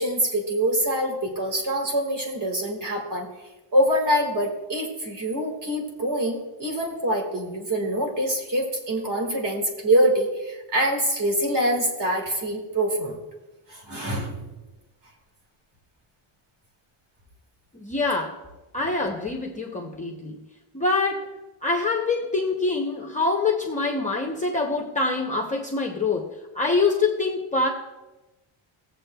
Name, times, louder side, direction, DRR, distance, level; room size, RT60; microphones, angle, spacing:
voice 1, 0.0-3.3 3.7-13.2 13.7-14.5, right 1 dB, 40° right, 2 dB, 1.8 m, -25 dB
voice 2, 17.7-18.4 18.7-20.4 20.7-21.3 21.6-26.3 26.5-27.7, left 3 dB, 15° left, 1 dB, 0.6 m, -25 dB
17.5 x 7.4 x 2.2 m, 1.1 s
cardioid pair, 175°, 50 cm